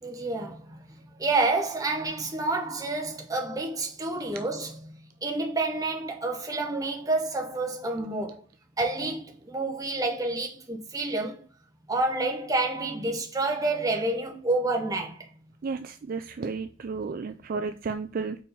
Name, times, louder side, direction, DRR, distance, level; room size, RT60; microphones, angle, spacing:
voice 1, 0.0-8.4 8.8-11.4 11.9-15.3, right 2 dB, 20° right, 1.1 m, -29 dB
voice 2, 15.6-18.4, right 4 dB, 45° right, 0.3 m, -33 dB
4.6 x 4.3 x 5.5 m
head